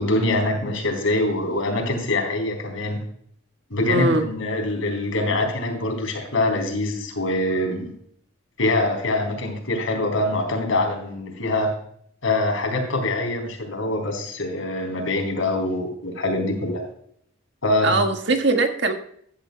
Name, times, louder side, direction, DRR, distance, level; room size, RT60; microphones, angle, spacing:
voice 1, 0.0-3.0 3.7-8.0 8.6-11.7 12.2-16.8 17.6-18.0, left 2 dB, 90° left, 2 dB, 3.9 m, -24 dB
voice 2, 3.9-4.3 17.8-18.9, right 2 dB, 60° right, 6 dB, 1.5 m, -21 dB
15.0 x 10.5 x 2.2 m, 0.64 s
head